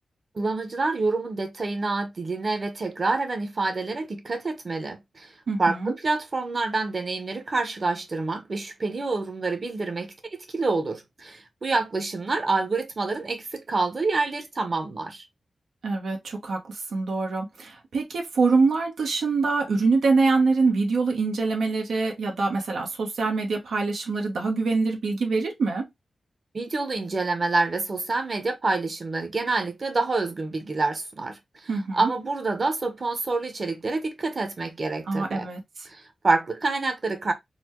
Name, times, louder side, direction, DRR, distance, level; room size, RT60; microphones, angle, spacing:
voice 1, 0.3-5.3 5.6-15.2 26.5-35.5 35.9-37.3, right 3 dB, 45° right, 0.9 m, -27 dB
voice 2, 5.5-5.9 15.8-25.9 31.7-32.1 35.1-35.6, right 4 dB, 90° right, 1.0 m, -24 dB
4.1 x 2.2 x 3.0 m
wide cardioid pair, 95°, 0 cm